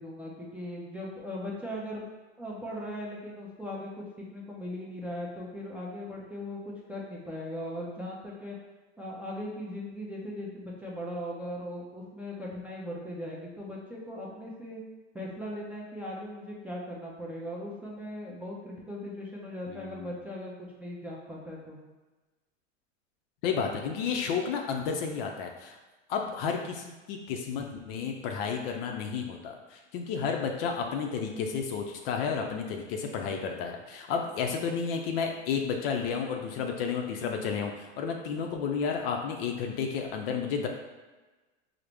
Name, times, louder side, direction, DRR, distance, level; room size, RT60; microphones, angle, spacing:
voice 1, 0.0-2.0 2.4-8.6 9.0-14.8 15.1-21.8, left 1 dB, 5° right, -5 dB, 0.6 m, -39 dB
voice 2, 19.7-20.1 23.4-25.8 26.1-40.7, left 6 dB, 50° left, 3 dB, 0.5 m, -32 dB
4.6 x 2.1 x 3.3 m, 1.2 s
hypercardioid pair, 105°, 36 cm